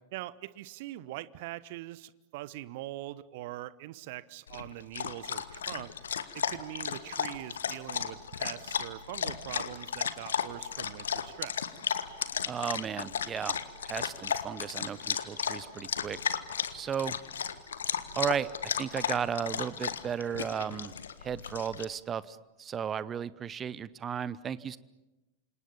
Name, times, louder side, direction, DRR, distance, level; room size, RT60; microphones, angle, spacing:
voice 1, 0.1-5.9 6.3-11.7, right 16 dB, 50° right, 18 dB, 1.0 m, -42 dB
Dog, 4.5-21.8, left 7 dB, 65° left, 1.4 m, -34 dB
voice 2, 12.5-13.6 13.8-16.4 16.7-17.2 18.1-18.5 18.8-20.9 21.2-24.8, right 8 dB, 25° right, 18 dB, 0.9 m, -34 dB
29.0 x 26.5 x 7.1 m, 1.0 s
figure-of-eight pair, 90°, 0 cm